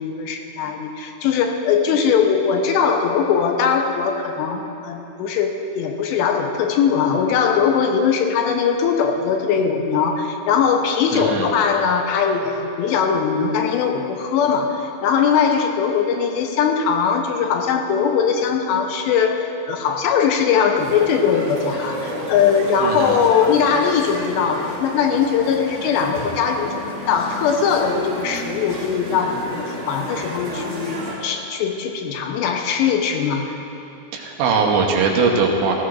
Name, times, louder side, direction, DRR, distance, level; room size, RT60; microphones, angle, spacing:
voice 1, 0.0-33.6, left 6 dB, 80° left, 4 dB, 2.9 m, -20 dB
voice 2, 11.1-11.5 22.8-23.2 34.1-35.7, right 4 dB, 80° right, -1 dB, 3.4 m, -20 dB
sound 1, 20.7-31.2, equal, 35° right, 2.5 m, -32 dB
18.5 x 15.5 x 2.6 m, 2.8 s
omnidirectional pair, 5.2 m